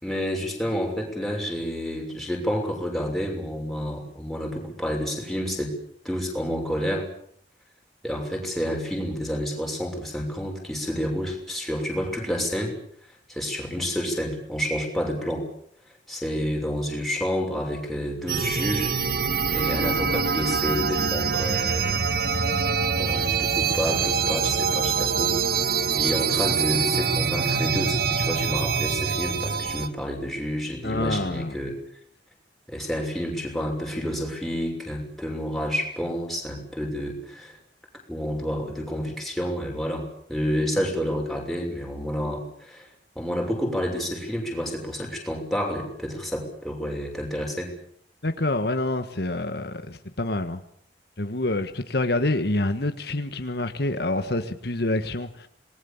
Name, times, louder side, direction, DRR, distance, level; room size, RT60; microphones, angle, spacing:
voice 1, 0.0-5.7 6.0-7.1 8.0-12.8 13.3-15.4 16.1-18.9 19.5-22.0 22.4-22.6 22.9-25.4 26.0-31.7 32.7-37.5 38.1-42.9 43.1-47.7, equal, ahead, 0 dB, 6.3 m, -29 dB
sound 1, 18.3-29.9, right 5 dB, 60° right, 1.4 m, -24 dB
voice 2, 30.8-31.5 48.2-50.6 51.2-55.5, left 2 dB, 65° left, 8 dB, 1.5 m, -27 dB
27.0 x 20.5 x 7.3 m, 0.65 s
head